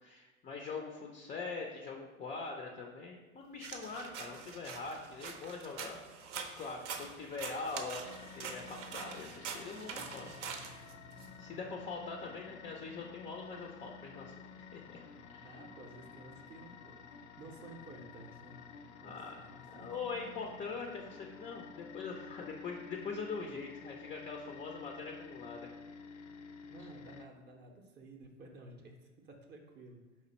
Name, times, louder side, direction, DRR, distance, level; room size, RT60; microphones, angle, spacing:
voice 1, 0.0-6.0 6.3-8.0 8.4-10.9 11.4-15.0 15.3-15.6 19.0-19.4 19.7-25.7, left 4 dB, 20° left, 2 dB, 0.4 m, -43 dB
sound 1, 3.6-11.3, right 6 dB, 70° right, 0.6 m, -45 dB
sound 2, 8.0-27.3, left 5 dB, 70° left, 0.5 m, -51 dB
voice 2, 15.4-17.0 17.4-19.9 26.7-30.0, right 2 dB, 30° right, 2 dB, 0.6 m, -53 dB
3.8 x 3.1 x 4.1 m, 1.2 s
hypercardioid pair, 85°, 37 cm